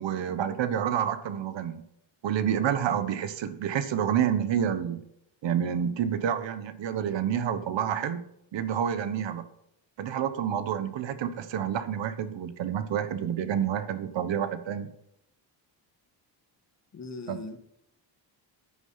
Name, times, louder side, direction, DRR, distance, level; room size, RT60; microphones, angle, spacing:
voice 1, 0.0-1.8 2.2-5.0 5.4-8.2 8.5-9.4 10.0-14.9 17.3-17.4, right 9 dB, 65° right, 1.3 m, -28 dB
voice 2, 16.9-17.6, left 3 dB, 35° left, 1.8 m, -39 dB
10.0 x 9.7 x 5.7 m
cardioid pair, 140°, 47 cm